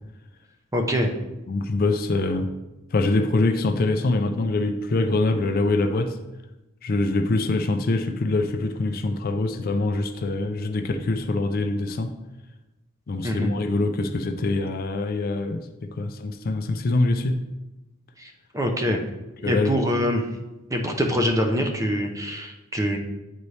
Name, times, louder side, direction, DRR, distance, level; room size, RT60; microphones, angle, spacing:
voice 1, 0.7-1.1 13.2-13.5 18.2-19.0 19.4-20.3 20.7-23.0, equal, 15° right, 3 dB, 0.6 m, -24 dB
voice 2, 1.5-2.5 2.9-6.2 6.8-12.1 13.1-17.4 19.4-19.8, left 2 dB, 45° left, 7 dB, 0.4 m, -24 dB
9.2 x 4.1 x 3.2 m, 1.0 s
head